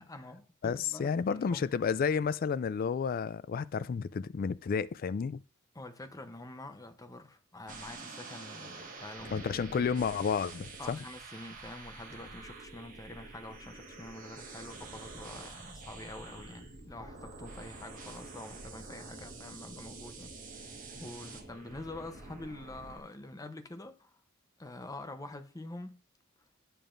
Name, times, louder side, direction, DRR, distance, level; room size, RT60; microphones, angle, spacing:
voice 1, 0.0-1.6 5.7-9.4 9.8-9.9 10.8-24.2 24.6-26.0, left 2 dB, 15° left, 0.8 m, -46 dB
voice 2, 0.6-5.4 9.3-11.0, left 6 dB, 45° left, 0.3 m, -31 dB
sound 1, 7.7-23.0, right 3 dB, 40° right, 1.6 m, -47 dB
10.5 x 6.8 x 2.6 m
head